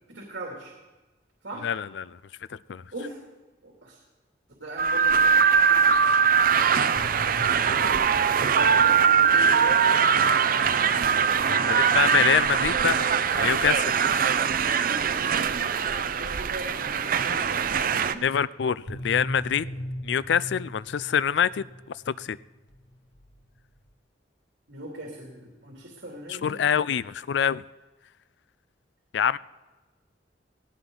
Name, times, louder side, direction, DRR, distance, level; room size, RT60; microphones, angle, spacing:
voice 1, 0.1-0.7 1.4-1.7 2.9-3.2 3.6-4.0 4.6-6.0 6.5-7.1 8.4-9.7 11.5-12.2 14.8-18.2 19.7-19.8 24.7-26.6, right 1 dB, 75° right, -1 dB, 2.7 m, -40 dB
voice 2, 1.6-2.2 2.5-2.8 11.1-11.2 11.5-13.9 18.2-19.7 20.0-21.7 22.1-22.4 26.3-27.6 29.1-29.4, left 8 dB, 65° left, 18 dB, 0.4 m, -25 dB
sound 1, 4.8-18.1, right 7 dB, 50° right, 0.6 m, -22 dB
sound 2, 6.7-16.9 18.9-23.9, equal, 85° left, 2.0 m, -42 dB
17.5 x 17.0 x 3.9 m, 1.2 s
head